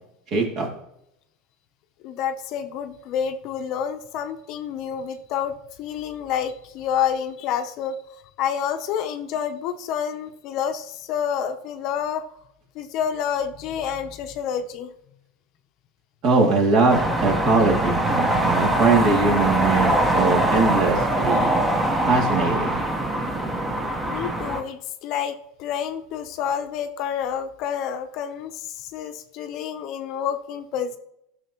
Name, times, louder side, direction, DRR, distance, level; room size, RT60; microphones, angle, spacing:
voice 1, 0.3-0.7 16.2-21.6 22.1-22.7, right 3 dB, 45° right, 0 dB, 2.4 m, -21 dB
voice 2, 2.0-7.9 8.4-12.2 12.7-14.9 24.1-31.0, left 8 dB, 45° left, 7 dB, 0.7 m, -28 dB
sound 1, 16.9-24.6, right 1 dB, 10° right, 1.0 m, -23 dB
13.0 x 6.3 x 3.0 m, 0.78 s
supercardioid pair, 150°, 0 cm